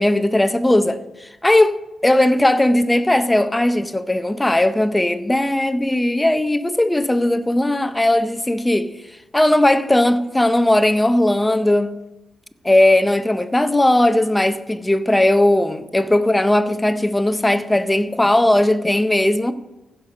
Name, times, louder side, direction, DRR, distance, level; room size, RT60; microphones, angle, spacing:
voice 1, 0.0-8.9 9.3-12.0 12.6-19.5, left 1 dB, 10° left, 0.6 m, -17 dB
15.5 x 6.6 x 5.4 m
wide cardioid pair, 135°, 0 cm